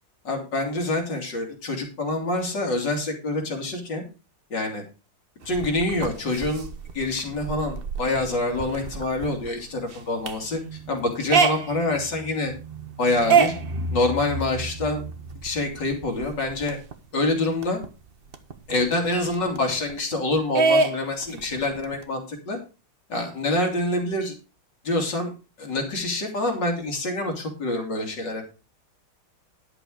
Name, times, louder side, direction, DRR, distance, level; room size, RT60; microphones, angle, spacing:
voice 1, 0.3-4.0 4.5-4.8 5.5-6.7 6.9-12.5 13.0-13.5 13.9-15.0 15.4-16.8 17.1-17.8 18.7-22.6 23.1-24.3 24.8-25.3 25.6-28.5, left 2 dB, 70° left, 2 dB, 3.5 m, -26 dB
sound 1, 5.4-16.9 17.3-17.4 17.6-20.1 20.6-22.0, right 4 dB, 40° right, 1.0 m, -27 dB
11.0 x 7.0 x 4.9 m, 0.32 s
omnidirectional pair, 2.0 m